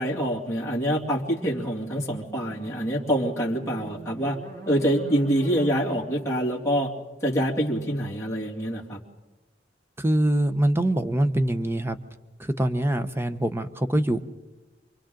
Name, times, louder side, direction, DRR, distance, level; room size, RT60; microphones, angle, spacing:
voice 1, 0.0-4.4 4.7-6.9 7.2-9.0, equal, 15° left, -5 dB, 2.5 m, -26 dB
sound 1, 2.5-7.6, right 2 dB, 60° right, 7.4 m, -45 dB
voice 2, 10.0-12.0 12.4-14.2, right 1 dB, 15° right, 10 dB, 0.8 m, -24 dB
29.0 x 23.5 x 3.9 m, 1.1 s
head